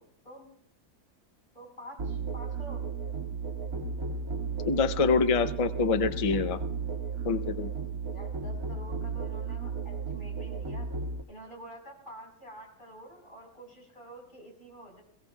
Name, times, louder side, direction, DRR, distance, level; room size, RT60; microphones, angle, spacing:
voice 1, 1.5-2.8 8.1-10.9 11.3-15.0, right 1 dB, 30° left, 0 dB, 5.0 m, -48 dB
Musical instrument, 2.0-11.2, right 5 dB, 60° right, 2.3 m, -34 dB
voice 2, 4.6-6.6 7.2-7.7, left 4 dB, 60° left, 10 dB, 0.3 m, -26 dB
22.5 x 16.5 x 2.3 m, 0.64 s
omnidirectional pair, 1.7 m